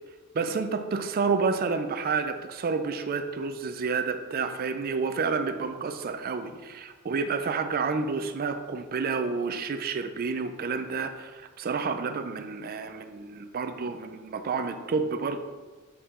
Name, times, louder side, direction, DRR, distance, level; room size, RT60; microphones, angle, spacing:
voice 1, 0.3-15.4, right 4 dB, 40° right, 8 dB, 0.4 m, -29 dB
7.0 x 4.6 x 3.7 m, 1.4 s
head